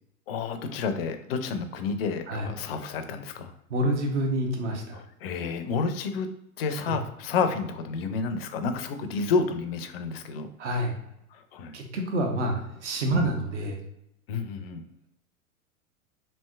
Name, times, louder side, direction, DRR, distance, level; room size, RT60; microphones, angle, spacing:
voice 1, 0.3-3.5 4.9-6.3 6.6-10.5 11.3-11.8 13.1-13.4 14.3-14.8, left 5 dB, 45° left, 8 dB, 0.4 m, -30 dB
voice 2, 3.7-5.0 6.9-7.0 10.6-11.0 11.7-13.8, right 1 dB, 55° right, 3 dB, 0.8 m, -28 dB
3.2 x 2.7 x 2.2 m, 0.81 s
figure-of-eight pair, 95°, 42 cm